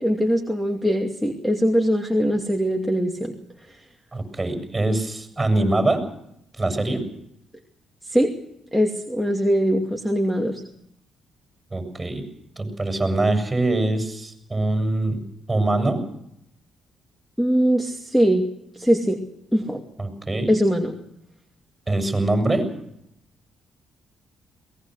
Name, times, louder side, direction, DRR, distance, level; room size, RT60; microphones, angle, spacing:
voice 1, 0.0-3.3 8.1-8.3 8.7-10.6 17.4-18.5 18.8-19.2 19.5-19.8 20.5-20.9, equal, 5° left, 3 dB, 2.5 m, -21 dB
voice 2, 4.1-6.0 6.6-7.0 11.7-12.2 12.6-16.0 20.0-20.6 21.9-22.7, right 2 dB, 15° right, 7 dB, 7.4 m, -23 dB
22.5 x 19.5 x 6.5 m, 0.76 s
cardioid pair, 90°, 0 cm